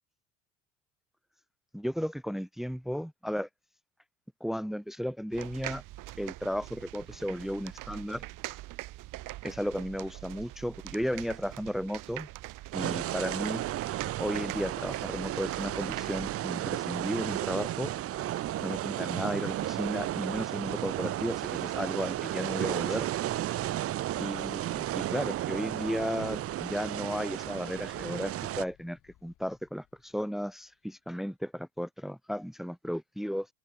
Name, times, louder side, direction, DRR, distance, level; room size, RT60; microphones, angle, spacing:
voice 1, 1.7-3.5 4.4-5.8 6.2-8.2 9.4-12.3 12.7-13.6 14.2-17.9 18.6-23.1 24.2-33.5, equal, ahead, 1.6 m, -34 dB
sound 1, 5.3-16.4, right 17 dB, 60° right, 3.5 m, -43 dB
sound 2, 12.7-28.6, right 13 dB, 40° right, 0.7 m, -33 dB
sound 3, 12.8-30.7, left 14 dB, 55° left, 5.8 m, -59 dB
hypercardioid pair, 70°, 36 cm